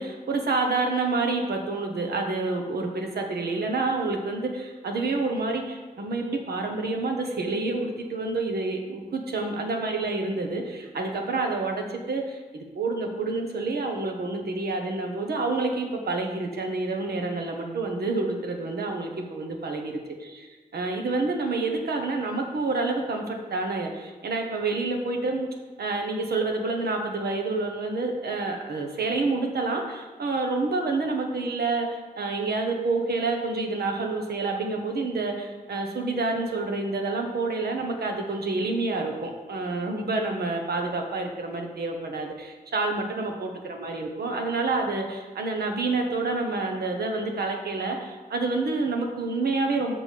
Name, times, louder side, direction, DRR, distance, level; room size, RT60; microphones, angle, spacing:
voice 1, 0.0-19.9 20.2-25.5 25.8-49.9, right 3 dB, 85° right, 3 dB, 1.1 m, -28 dB
6.6 x 5.9 x 5.1 m, 1.3 s
cardioid pair, 60°, 16 cm